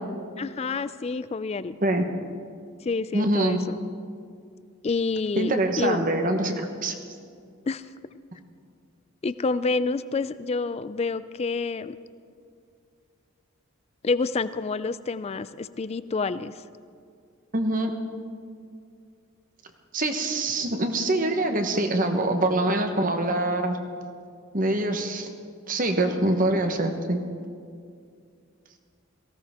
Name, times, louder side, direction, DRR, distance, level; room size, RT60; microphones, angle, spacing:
voice 1, 0.4-1.8 2.8-3.8 4.8-6.0 7.7-7.8 9.2-12.0 14.0-16.5, left 4 dB, 30° left, 15 dB, 0.3 m, -28 dB
voice 2, 3.1-3.6 5.4-6.9 17.5-17.9 19.9-23.8 24.5-25.3 25.7-27.2, right 1 dB, 40° right, 5 dB, 1.1 m, -24 dB
18.0 x 16.5 x 3.6 m, 2.3 s
head